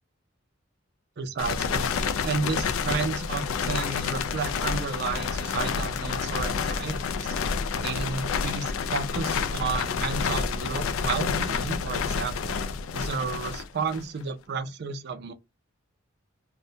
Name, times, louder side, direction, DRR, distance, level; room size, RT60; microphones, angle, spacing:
voice 1, 1.2-1.9 2.2-7.4 7.7-12.6 12.9-15.3, right 4 dB, 50° right, 0.4 m, -32 dB
sound 1, 1.4-14.2, left 5 dB, 80° left, 0.4 m, -29 dB
Wind instrument woodwind instrument, 2.9-9.1, left 4 dB, 25° left, 0.6 m, -51 dB
2.6 x 2.1 x 2.7 m
head